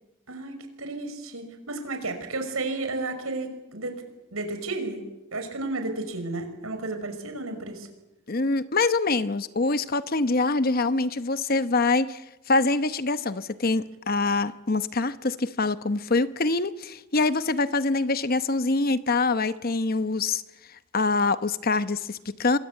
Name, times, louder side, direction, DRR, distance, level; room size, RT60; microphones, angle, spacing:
voice 1, 0.3-4.0 4.3-5.0 5.3-7.9, right 2 dB, 85° right, 7 dB, 5.6 m, -32 dB
voice 2, 8.3-12.2 12.5-20.4 20.9-22.6, left 3 dB, 45° left, 12 dB, 0.9 m, -25 dB
27.0 x 21.5 x 8.4 m, 1.0 s
head